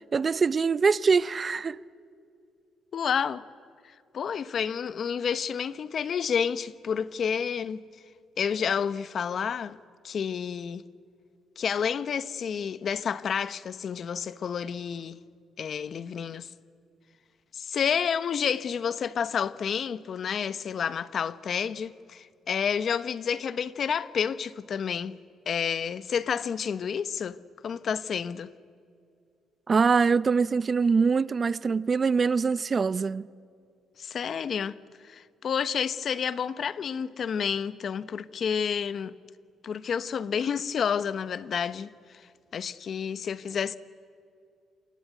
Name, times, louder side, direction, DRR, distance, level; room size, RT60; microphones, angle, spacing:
voice 1, 0.1-1.8 29.7-33.3, right 5 dB, 40° right, 0.6 m, -23 dB
voice 2, 2.9-3.4 4.1-7.8 8.4-9.8 10.0-10.9 11.6-15.2 15.6-16.5 17.5-25.2 25.5-28.5 34.0-34.8 35.0-39.2 39.6-42.3 42.5-43.7, left 7 dB, 55° left, 0.9 m, -30 dB
27.5 x 22.5 x 9.3 m
cardioid pair, 90°, 0 cm